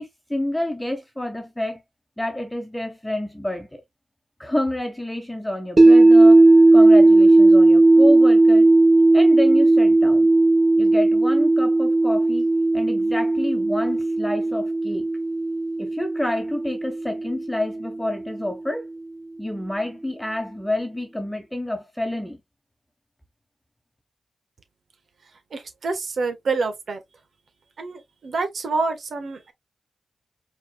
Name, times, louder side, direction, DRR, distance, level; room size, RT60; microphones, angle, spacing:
voice 1, 0.0-1.8 2.2-3.8 4.4-8.7 9.1-10.3 10.8-15.1 15.8-18.9 19.4-22.4, left 1 dB, 10° left, 1.2 m, -28 dB
sound 1, 5.8-17.9, right 2 dB, 50° right, 1.7 m, -16 dB
voice 2, 25.5-27.0 27.8-29.5, right 3 dB, 70° right, 1.4 m, -27 dB
4.7 x 4.2 x 2.3 m
cardioid pair, 50°, 0 cm